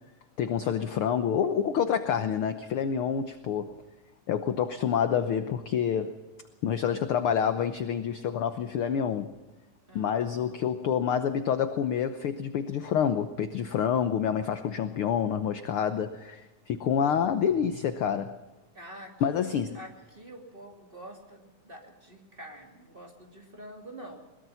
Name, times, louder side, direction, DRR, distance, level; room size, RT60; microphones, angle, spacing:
voice 1, 0.4-3.7 4.3-6.2 6.6-9.3 9.9-18.4 19.2-19.8, left 8 dB, 65° left, 1.3 m, -28 dB
voice 2, 9.9-10.6 18.7-24.2, right 1 dB, 20° right, 2.7 m, -47 dB
21.5 x 21.5 x 5.7 m
omnidirectional pair, 3.5 m